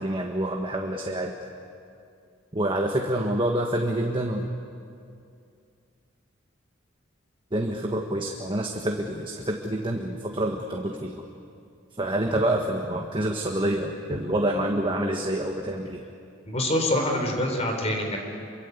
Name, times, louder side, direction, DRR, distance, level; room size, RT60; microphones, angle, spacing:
voice 1, 0.0-1.3 2.5-4.5 7.5-11.3 12.0-16.0, right 1 dB, 25° right, 1 dB, 1.5 m, -27 dB
voice 2, 16.5-18.2, left 1 dB, 35° left, 3 dB, 4.1 m, -25 dB
27.5 x 23.5 x 8.3 m, 2.4 s
head